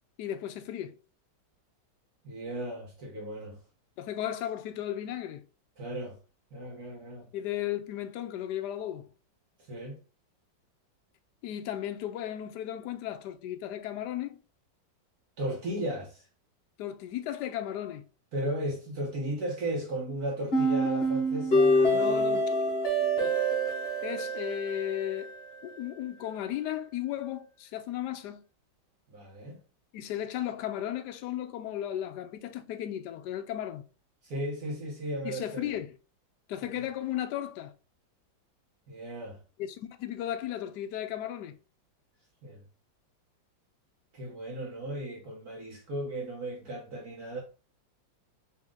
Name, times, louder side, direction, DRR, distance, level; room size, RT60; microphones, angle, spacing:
voice 1, 0.2-1.0 4.0-5.5 7.3-9.1 11.4-14.4 16.8-18.1 21.9-22.4 23.2-23.4 24.0-25.3 25.6-28.4 29.9-33.9 35.2-35.9 36.5-37.7 39.6-41.6, left 11 dB, 70° left, 1.0 m, -35 dB
voice 2, 2.2-3.6 5.8-6.2 6.5-7.3 9.7-10.0 15.4-16.3 18.3-22.4 29.1-29.6 34.2-35.7 36.6-36.8 38.9-39.4 42.4-42.6 44.1-47.4, right 1 dB, 60° right, 1.4 m, -35 dB
sound 1, 20.5-25.6, equal, 35° left, 1.2 m, -26 dB
4.3 x 2.7 x 3.6 m
omnidirectional pair, 2.1 m